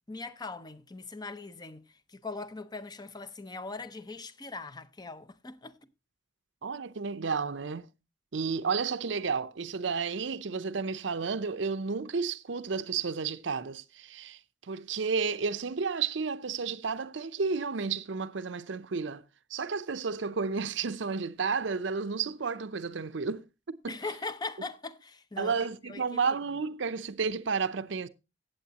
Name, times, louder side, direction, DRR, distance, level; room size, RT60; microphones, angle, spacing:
voice 1, 0.1-5.8 23.9-25.5 25.9-26.4, left 3 dB, 20° left, 0.6 m, -40 dB
voice 2, 6.6-7.9 8.3-19.2 19.5-24.0 25.4-28.1, right 5 dB, 65° right, 0.6 m, -32 dB
16.5 x 7.9 x 2.9 m
head